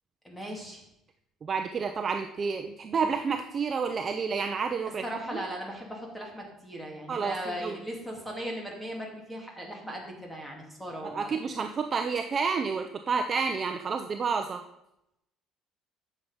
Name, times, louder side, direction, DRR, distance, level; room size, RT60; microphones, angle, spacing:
voice 1, 0.2-0.8 5.0-11.3, equal, ahead, 0 dB, 2.3 m, -38 dB
voice 2, 1.4-5.4 7.1-7.8 11.0-14.6, right 5 dB, 30° right, 6 dB, 0.6 m, -30 dB
10.0 x 7.1 x 5.5 m, 0.83 s
cardioid pair, 160°, 0 cm